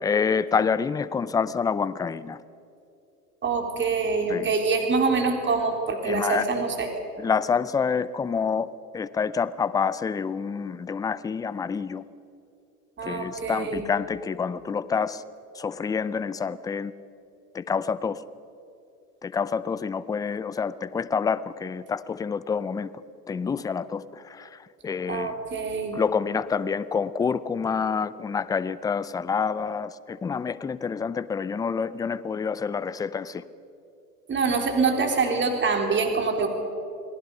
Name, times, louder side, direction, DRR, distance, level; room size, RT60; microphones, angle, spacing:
voice 1, 0.0-2.4 4.3-4.5 6.0-6.5 7.2-12.0 13.0-15.2 15.6-16.9 17.5-18.2 19.2-22.9 23.3-24.6 24.8-25.3 25.9-33.4, left 6 dB, 10° left, 17 dB, 0.4 m, -27 dB
voice 2, 3.4-6.9 13.0-13.9 25.1-26.0 34.3-36.5, right 4 dB, 25° right, 3 dB, 3.8 m, -25 dB
29.0 x 19.5 x 5.4 m, 2.7 s
hypercardioid pair, 100°, 47 cm